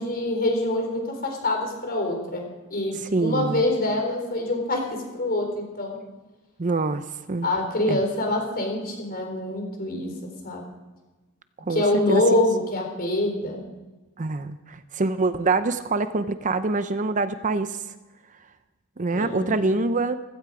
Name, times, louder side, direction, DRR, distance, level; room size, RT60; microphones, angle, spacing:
voice 1, 0.0-6.0 7.4-10.6 11.7-13.6 19.1-19.5, left 1 dB, 45° left, 2 dB, 4.3 m, -25 dB
voice 2, 3.0-3.6 6.6-7.5 7.9-8.0 11.6-11.8 12.1-12.2 14.2-17.9 19.0-20.2, right 3 dB, 35° right, 11 dB, 0.6 m, -25 dB
16.0 x 15.5 x 5.0 m, 1.2 s
head